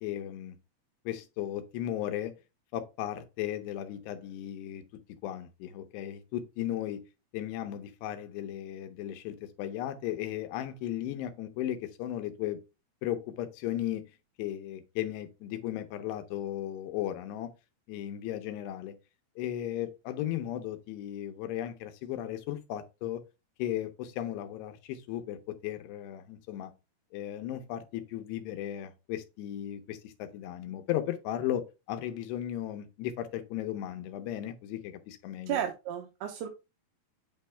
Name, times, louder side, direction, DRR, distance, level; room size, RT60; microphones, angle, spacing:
voice 1, 0.0-0.6 1.1-2.3 2.7-4.8 5.2-7.0 7.3-12.6 13.0-14.0 14.4-17.5 17.9-19.0 19.4-23.2 23.6-26.7 27.1-35.6, left 12 dB, 80° left, 2.8 m, -36 dB
voice 2, 35.5-36.5, right 10 dB, 80° right, 2.5 m, -33 dB
9.1 x 3.3 x 3.2 m
omnidirectional pair, 5.0 m